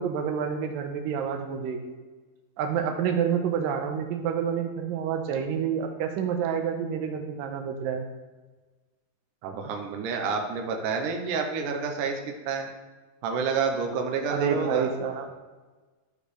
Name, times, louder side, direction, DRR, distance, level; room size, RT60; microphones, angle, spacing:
voice 1, 0.0-2.0 2.6-8.1 14.3-15.3, right 7 dB, 90° right, 4 dB, 2.4 m, -28 dB
voice 2, 9.4-12.7 13.2-14.9, right 5 dB, 75° right, 3 dB, 2.3 m, -29 dB
12.0 x 5.1 x 3.3 m, 1.3 s
omnidirectional pair, 4.0 m